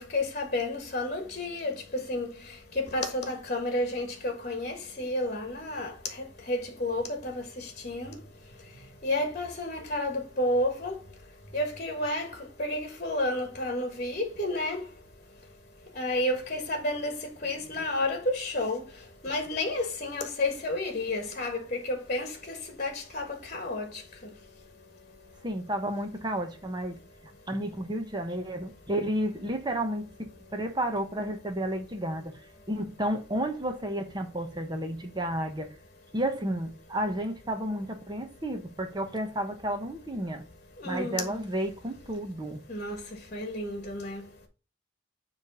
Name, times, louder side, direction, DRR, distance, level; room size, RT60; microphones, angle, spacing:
voice 1, 0.0-1.7 2.1-2.3 2.7-5.9 6.5-8.1 9.0-11.0 11.5-12.3 12.6-14.8 15.9-17.1 17.4-18.8 19.2-23.9 40.8-41.3 42.7-43.0 43.3-44.2, left 1 dB, 40° left, 1.4 m, -31 dB
voice 2, 25.4-27.0 27.5-32.4 32.7-35.7 36.1-40.4 40.8-42.6, right 1 dB, 20° right, 1.0 m, -32 dB
7.3 x 3.3 x 5.3 m
head